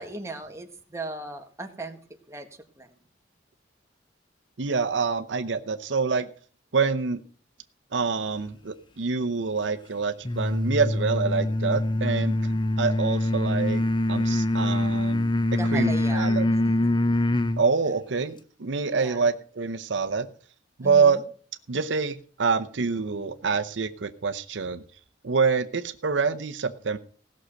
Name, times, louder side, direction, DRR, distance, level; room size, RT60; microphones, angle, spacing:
voice 1, 0.0-2.0 2.3-2.5 2.8-3.0 12.0-12.5 15.6-16.3 19.0-19.3 20.8-21.2, right 2 dB, 15° right, 4 dB, 1.5 m, -37 dB
voice 2, 4.6-6.3 6.7-7.2 7.9-12.4 12.8-13.8 14.1-15.3 15.7-16.5 17.6-20.3 20.8-21.2 21.7-24.8 25.2-27.0, right 5 dB, 70° right, 10 dB, 0.7 m, -26 dB
sound 1, 10.2-17.6, left 1 dB, 25° left, 0.7 m, -24 dB
17.0 x 6.4 x 6.5 m, 0.43 s
head